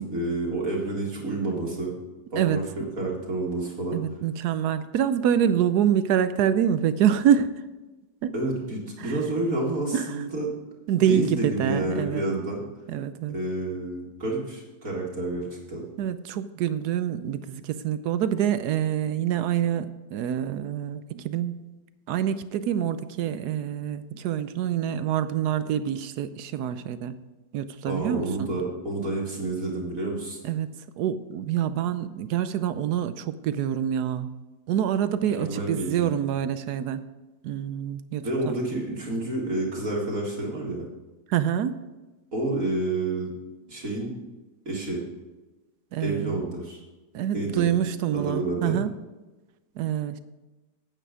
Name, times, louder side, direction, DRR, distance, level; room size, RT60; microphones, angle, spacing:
voice 1, 0.0-1.9 2.3-4.0 8.3-10.5 11.1-12.6 13.3-15.8 27.9-30.4 35.4-36.2 38.2-40.8 42.3-43.3 43.7-44.1 44.7-45.0 46.0-46.8 47.3-47.7 48.1-48.8, right 2 dB, 50° right, -3 dB, 2.3 m, -29 dB
voice 2, 3.9-7.5 8.2-8.3 9.0-9.2 9.9-10.2 10.9-12.3 12.9-13.4 16.0-21.6 22.1-27.2 27.5-28.5 30.4-30.7 31.0-34.3 34.7-37.0 37.4-38.6 41.3-41.8 45.9-46.4 47.1-48.9 49.8-50.2, right 9 dB, 75° right, 13 dB, 1.1 m, -26 dB
9.1 x 8.8 x 5.0 m, 1.1 s
omnidirectional pair, 1.9 m